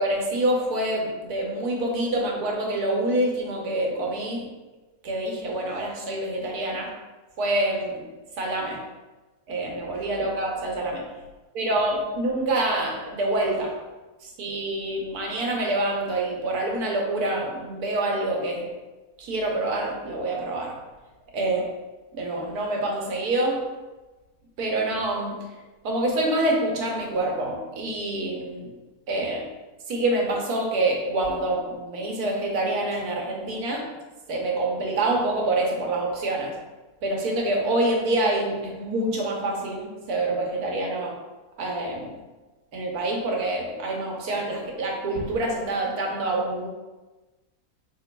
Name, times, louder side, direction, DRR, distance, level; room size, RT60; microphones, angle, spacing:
voice 1, 0.0-4.4 5.0-6.9 7.4-8.0 8.4-8.8 9.5-11.0 11.5-13.7 14.2-18.7 19.2-20.7 21.3-21.7 22.1-23.6 24.6-25.3 25.8-28.7 29.1-29.4 29.9-33.9 34.3-36.5 37.0-41.1 41.6-42.1 42.7-46.7, right 2 dB, 85° right, 0 dB, 1.3 m, -26 dB
4.3 x 3.9 x 2.2 m, 1.2 s
omnidirectional pair, 1.6 m